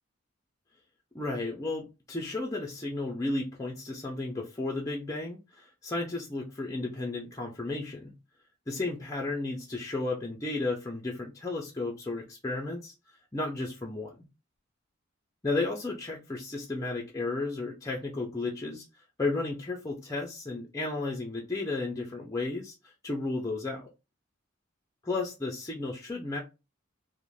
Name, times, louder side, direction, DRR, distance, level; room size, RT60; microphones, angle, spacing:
voice 1, 1.1-8.1 8.7-12.9 13.3-14.1 15.4-18.8 19.2-23.9 25.0-26.4, left 2 dB, 15° left, -1 dB, 0.4 m, -33 dB
2.5 x 2.1 x 3.0 m, 0.27 s
head